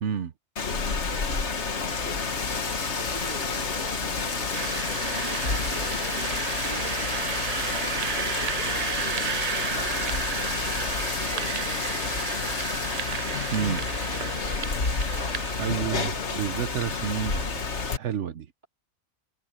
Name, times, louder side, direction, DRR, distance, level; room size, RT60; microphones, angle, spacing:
voice 1, 0.0-0.3 13.5-13.8 15.6-18.5, right 8 dB, 75° right, 1.2 m, -30 dB
Rain, 0.6-18.0, left 4 dB, 70° left, 2.0 m, -30 dB
sound 1, 1.7-13.4, left 4 dB, 40° left, 1.4 m, -37 dB
voice 2, 2.9-6.9 8.1-10.4 11.0-12.7 15.7-16.5, right 2 dB, 40° right, 2.8 m, -45 dB
sound 2, 4.5-15.7, right 8 dB, 55° right, 0.4 m, -33 dB
omnidirectional pair, 1.2 m